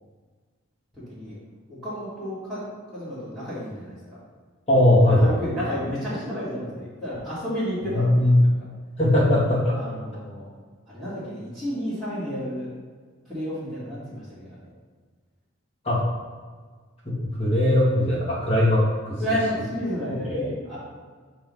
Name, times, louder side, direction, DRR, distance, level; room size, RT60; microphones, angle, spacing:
voice 1, 1.7-2.6 2.9-4.2 5.1-8.5 9.7-10.4 10.9-12.7 13.3-14.7 19.2-20.8, equal, ahead, -13 dB, 1.9 m, -31 dB
voice 2, 4.7-5.4 7.9-8.4 9.0-9.7 15.8-16.0 17.0-19.4 20.1-20.5, left 1 dB, 30° left, -7 dB, 1.9 m, -20 dB
7.1 x 3.1 x 5.3 m, 1.5 s
head